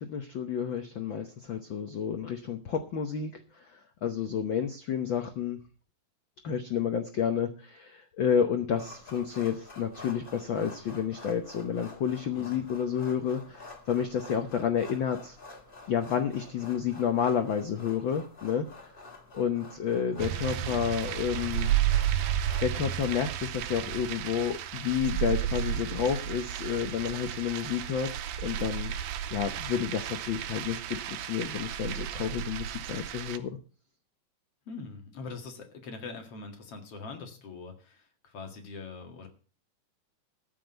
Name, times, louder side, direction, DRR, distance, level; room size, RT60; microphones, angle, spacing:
voice 1, 0.0-5.6 6.4-15.4 15.9-18.7 19.3-21.7 22.6-28.9 29.3-33.5, left 8 dB, 85° left, 7 dB, 1.0 m, -30 dB
sound 1, 8.8-23.1, left 3 dB, 20° left, 1.6 m, -49 dB
sound 2, 20.2-33.4, right 11 dB, 80° right, 2.2 m, -32 dB
voice 2, 20.6-20.9 34.7-39.3, left 4 dB, 50° left, 4 dB, 2.8 m, -43 dB
14.0 x 5.9 x 7.9 m, 0.38 s
omnidirectional pair, 3.6 m